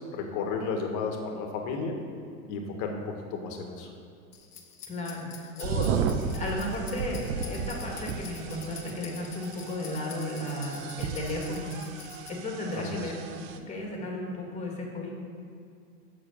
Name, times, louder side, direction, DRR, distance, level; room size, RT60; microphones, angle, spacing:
voice 1, 0.1-2.0 2.5-3.9 12.7-12.9, left 4 dB, 40° left, 3 dB, 1.7 m, -33 dB
sound 1, 4.3-12.3, left 7 dB, 85° left, 1.4 m, -47 dB
voice 2, 4.9-6.0 6.3-11.8 12.3-13.2 13.5-15.1, left 1 dB, 15° left, -1 dB, 2.1 m, -34 dB
sound 2, 5.6-13.6, right 6 dB, 60° right, 0.9 m, -34 dB
7.7 x 6.3 x 6.6 m, 2.5 s
hypercardioid pair, 115°, 44 cm